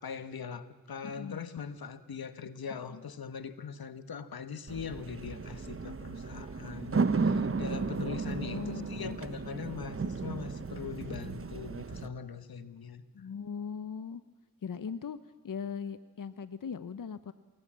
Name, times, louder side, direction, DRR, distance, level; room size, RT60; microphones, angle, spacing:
voice 1, 0.0-13.0, left 6 dB, 90° left, 11 dB, 1.3 m, -41 dB
voice 2, 1.0-1.5 2.9-3.0 6.6-6.9 8.4-9.2 13.1-14.2 14.6-15.2 15.4-17.3, left 6 dB, 65° left, 13 dB, 0.8 m, -39 dB
sound 1, 4.7-12.1, right 4 dB, 40° right, 0.9 m, -34 dB
28.0 x 20.0 x 7.4 m, 1.2 s
wide cardioid pair, 65°, 35 cm